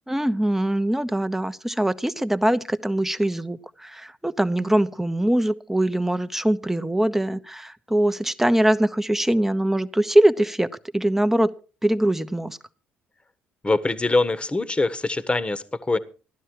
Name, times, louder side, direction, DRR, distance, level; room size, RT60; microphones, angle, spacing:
voice 1, 0.1-10.7 10.9-11.5 11.8-12.6, right 1 dB, 5° right, 11 dB, 1.1 m, -22 dB
voice 2, 13.6-16.0, left 3 dB, 20° left, 14 dB, 1.4 m, -23 dB
16.0 x 12.0 x 4.7 m, 0.36 s
hypercardioid pair, 50°, 6 cm